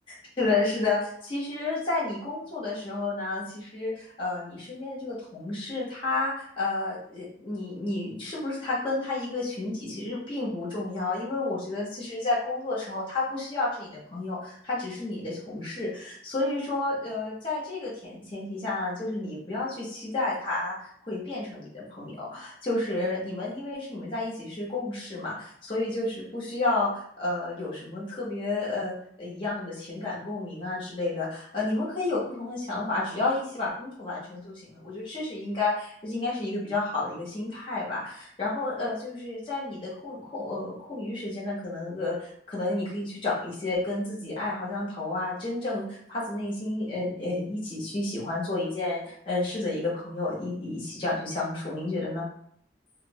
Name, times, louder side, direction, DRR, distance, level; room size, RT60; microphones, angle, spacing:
voice 1, 0.1-26.9 27.2-52.3, left 2 dB, 30° left, -8 dB, 0.9 m, -31 dB
2.8 x 2.0 x 2.8 m, 0.65 s
head